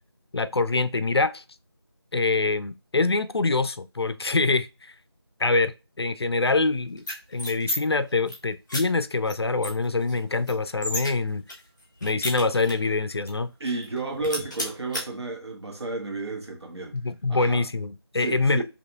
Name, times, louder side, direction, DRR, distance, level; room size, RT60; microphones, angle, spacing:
voice 1, 0.3-1.4 2.1-4.9 5.4-7.0 7.3-11.4 12.0-13.5 16.9-18.6, left 3 dB, 70° left, 0.4 m, -25 dB
sound 1, 7.0-7.8 8.1-8.4 8.7-8.8 9.3-9.4 9.6-11.1 11.5-12.9 13.3-13.4 13.7-14.0 14.2-15.0, left 1 dB, 5° left, 0.8 m, -32 dB
voice 2, 13.6-17.0 17.3-17.6 18.2-18.6, right 3 dB, 75° right, 1.6 m, -32 dB
4.3 x 2.8 x 2.4 m
figure-of-eight pair, 170°, 14 cm